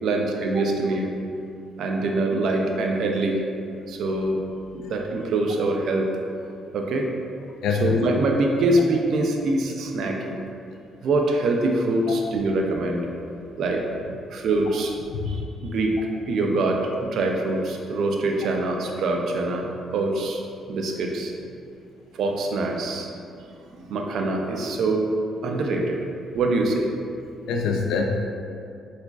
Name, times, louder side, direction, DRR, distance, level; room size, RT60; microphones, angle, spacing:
voice 1, 0.0-1.1 1.8-3.4 3.9-4.4 4.7-6.1 6.7-7.1 7.8-10.4 11.0-13.1 13.6-13.9 14.3-14.9 15.3-16.0 16.3-20.4 20.7-21.3 22.1-23.1 23.7-25.1 25.4-26.0 26.3-26.9, right 2 dB, 70° right, 2 dB, 0.4 m, -24 dB
voice 2, 7.6-8.0 12.1-12.2 15.1-15.3 27.5-28.0, left 5 dB, 85° left, 2 dB, 0.4 m, -24 dB
4.5 x 2.4 x 2.3 m, 2.5 s
cardioid pair, 90°, 0 cm